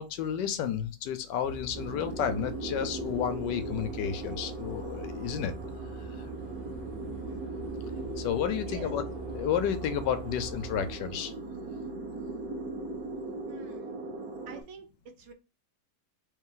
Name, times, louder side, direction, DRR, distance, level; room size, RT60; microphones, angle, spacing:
voice 1, 0.0-5.5 8.2-9.0 9.3-11.3, left 9 dB, 85° left, 10 dB, 1.2 m, -31 dB
sound 1, 1.4-10.9, right 3 dB, 40° left, 0.6 m, -43 dB
sound 2, 1.7-14.6, right 3 dB, 65° right, 1.3 m, -39 dB
voice 2, 13.5-13.9 14.5-15.3, right 5 dB, 85° right, 6 dB, 1.5 m, -47 dB
3.2 x 3.2 x 3.7 m, 0.29 s
omnidirectional pair, 1.9 m